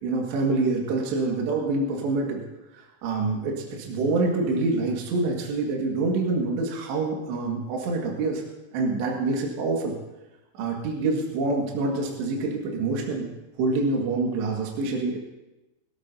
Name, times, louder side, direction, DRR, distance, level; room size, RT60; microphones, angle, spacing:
voice 1, 0.0-2.4 2.7-8.4 8.7-10.0 10.5-13.3 13.6-15.2, right 3 dB, 65° right, -1 dB, 3.9 m, -26 dB
26.5 x 12.5 x 2.8 m, 1.0 s
omnidirectional pair, 5.6 m